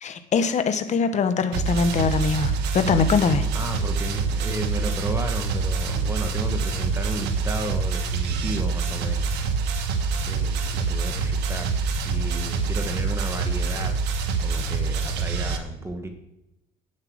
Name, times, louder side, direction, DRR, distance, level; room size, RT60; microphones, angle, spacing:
voice 1, 0.0-3.5, left 5 dB, 45° left, 9 dB, 1.0 m, -22 dB
sound 1, 1.5-15.6, right 4 dB, 85° right, 1.3 m, -26 dB
voice 2, 3.5-9.3 9.6-9.8 10.2-11.7 12.0-14.0 14.4-16.1, right 1 dB, 15° right, 5 dB, 1.3 m, -33 dB
8.9 x 7.6 x 6.3 m, 0.91 s
cardioid pair, 110°, 17 cm